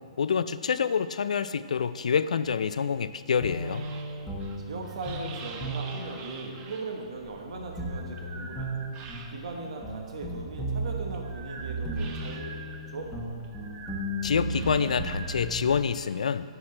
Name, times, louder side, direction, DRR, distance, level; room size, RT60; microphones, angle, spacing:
voice 1, 0.0-3.9 14.2-16.5, left 6 dB, 85° left, 13 dB, 0.3 m, -27 dB
sound 1, 2.9-9.7 10.1-15.9, right 5 dB, 25° right, 0.6 m, -46 dB
sound 2, 3.4-15.8, right 1 dB, 5° left, 0.9 m, -35 dB
voice 2, 4.7-8.7 9.3-12.5 12.9-13.1, right 3 dB, 65° right, 1 dB, 1.1 m, -38 dB
14.5 x 5.9 x 3.2 m, 2.2 s
hypercardioid pair, 160°, 4 cm